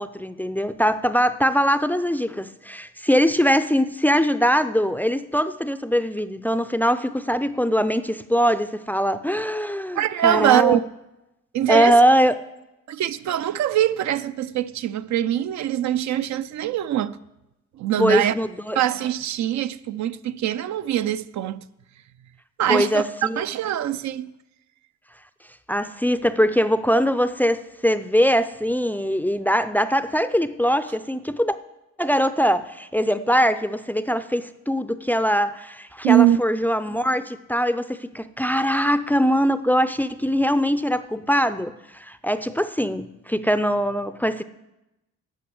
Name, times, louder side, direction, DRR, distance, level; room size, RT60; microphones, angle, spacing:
voice 1, 0.0-10.8 11.7-12.3 18.0-18.8 22.7-23.4 25.7-31.6 32.0-44.4, equal, 5° left, 0.4 m, -22 dB
voice 2, 9.9-10.8 11.5-12.0 12.9-17.2 17.8-18.3 18.8-21.6 22.6-24.3 36.0-36.4, right 12 dB, 65° right, 0.5 m, -22 dB
11.5 x 6.0 x 7.8 m
cardioid pair, 90°, 30 cm